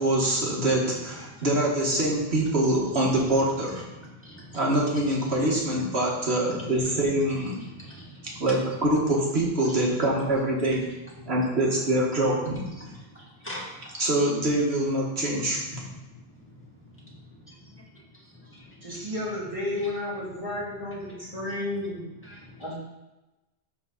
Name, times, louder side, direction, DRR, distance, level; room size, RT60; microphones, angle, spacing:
voice 1, 0.0-3.8 4.5-7.6 8.4-10.9 11.3-12.9 14.0-15.9, right 1 dB, 80° right, -3 dB, 2.1 m, -25 dB
voice 2, 1.1-1.7 2.0-2.3 2.9-6.0 6.5-9.1 9.6-10.0 10.7-11.5 12.8-13.9 15.2-15.4 15.7-19.1 20.2-20.5 20.9-21.7 22.2-22.7, left 1 dB, 10° left, -3 dB, 2.1 m, -45 dB
voice 3, 18.8-22.1 22.6-22.7, left 1 dB, 30° right, -7 dB, 2.6 m, -32 dB
12.0 x 4.1 x 4.1 m, 1.0 s
omnidirectional pair, 1.1 m